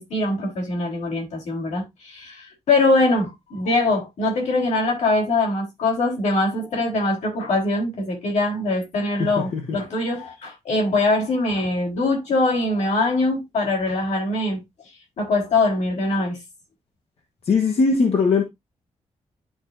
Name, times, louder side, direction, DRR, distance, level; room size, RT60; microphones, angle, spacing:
voice 1, 0.0-14.6 15.2-16.4, left 2 dB, 85° left, 3.5 m, -22 dB
voice 2, 9.2-9.8 17.4-18.4, left 4 dB, 60° left, 1.1 m, -20 dB
11.5 x 4.5 x 2.6 m
wide cardioid pair, 170°, 12 cm